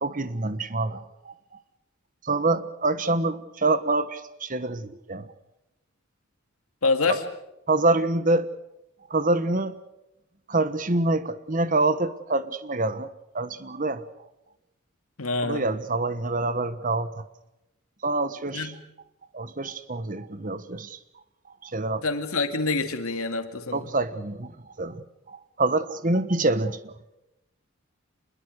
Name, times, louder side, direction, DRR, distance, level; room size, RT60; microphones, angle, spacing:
voice 1, 0.0-1.3 2.2-5.3 7.7-8.5 9.1-9.8 10.5-14.0 15.4-17.2 18.0-18.7 19.3-21.0 21.6-22.0 23.7-26.9, right 2 dB, 40° right, 13 dB, 1.2 m, -26 dB
voice 2, 6.8-7.2 15.2-15.7 18.5-18.7 22.0-23.8, left 3 dB, 85° left, 7 dB, 2.3 m, -26 dB
27.0 x 21.5 x 6.6 m, 0.90 s
head